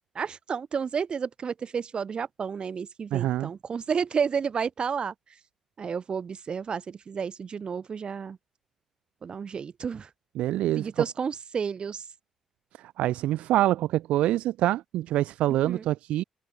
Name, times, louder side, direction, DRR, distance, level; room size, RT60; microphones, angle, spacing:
voice 1, 0.1-5.1 5.8-8.4 9.2-10.1 10.8-12.0 15.6-15.8, right 6 dB, 50° right, 3.1 m, -31 dB
voice 2, 3.1-3.5 10.4-11.0 12.8-16.2, right 14 dB, 70° right, 0.5 m, -26 dB
hypercardioid pair, 40°, 2 cm